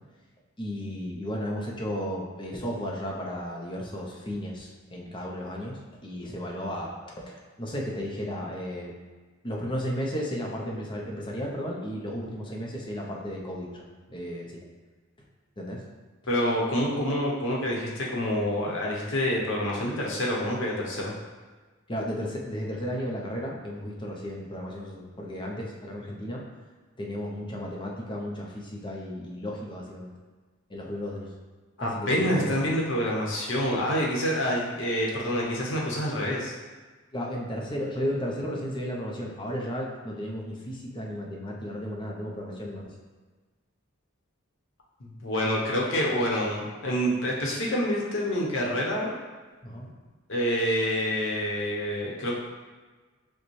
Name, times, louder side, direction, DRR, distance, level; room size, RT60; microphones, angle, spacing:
voice 1, 0.6-8.9 9.4-13.8 14.1-14.6 15.6-15.8 21.9-26.4 27.0-30.1 30.7-31.3 31.8-32.6 37.1-42.8 49.6-49.9, equal, 25° left, -2 dB, 0.6 m, -34 dB
voice 2, 16.3-21.1 31.8-36.5 45.0-49.1 50.3-52.4, equal, 65° left, -3 dB, 0.9 m, -27 dB
6.5 x 2.2 x 3.1 m, 1.3 s
head